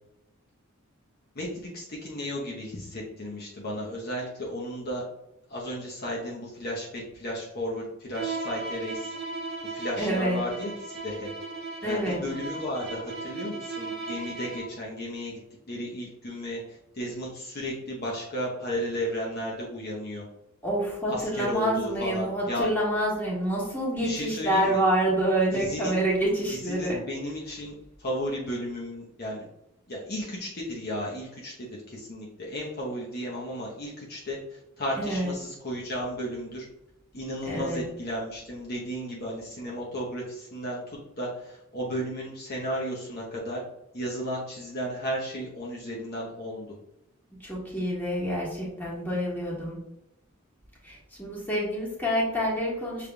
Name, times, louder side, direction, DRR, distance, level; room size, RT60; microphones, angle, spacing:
voice 1, 1.3-5.0 5.5-9.1 9.6-11.3 11.8-15.4 15.7-16.6 16.9-20.3 21.1-22.7 24.0-24.8 25.5-26.0 26.5-29.4 29.9-36.7 37.1-43.6 43.9-46.7, equal, 45° left, -4 dB, 0.9 m, -34 dB
Bowed string instrument, 8.1-14.8, right 3 dB, 45° right, 0.9 m, -37 dB
voice 2, 10.0-10.4 11.8-12.2 20.6-27.0 35.0-35.3 37.5-37.8 47.4-49.8 50.8-53.1, right 1 dB, 10° left, -5 dB, 1.5 m, -27 dB
6.7 x 3.4 x 2.3 m, 0.84 s
head